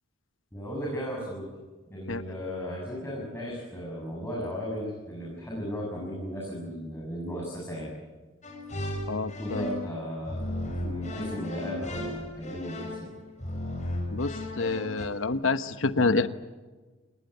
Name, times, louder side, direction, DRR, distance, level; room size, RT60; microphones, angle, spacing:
voice 1, 0.5-1.5 1.9-7.9 9.4-13.1, equal, 10° left, -3 dB, 7.4 m, -36 dB
sound 1, 8.4-9.9 10.3-15.1, left 1 dB, 40° left, 6.8 m, -35 dB
voice 2, 9.1-9.7 14.1-16.3, left 3 dB, 80° left, 11 dB, 1.2 m, -27 dB
28.0 x 20.0 x 8.2 m, 1.3 s
head